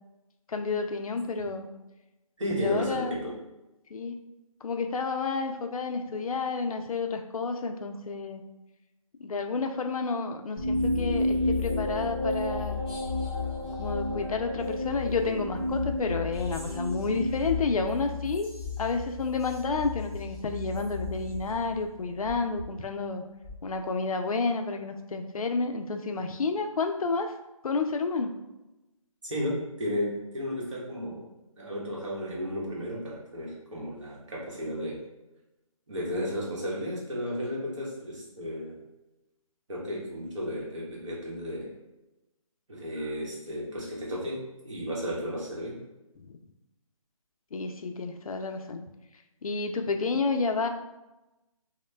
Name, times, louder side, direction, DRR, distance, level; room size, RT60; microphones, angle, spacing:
voice 1, 0.5-1.7 2.6-3.2 3.9-4.2 4.6-8.4 9.2-12.8 13.8-18.5 18.8-23.2 23.6-27.3 27.6-28.3 46.2-46.3 47.5-48.8 49.4-50.7, left 4 dB, 75° left, 5 dB, 0.4 m, -30 dB
voice 2, 2.4-3.3 29.2-31.3 31.6-35.0 35.9-38.8 39.7-41.7 42.7-44.4 44.6-45.7, equal, 55° right, -5 dB, 1.2 m, -33 dB
sound 1, 10.6-22.1, left 2 dB, 15° left, 0.5 m, -32 dB
sound 2, 16.6-23.6, left 2 dB, 10° right, 0.9 m, -44 dB
3.0 x 2.1 x 3.2 m, 0.99 s
hypercardioid pair, 170°, 18 cm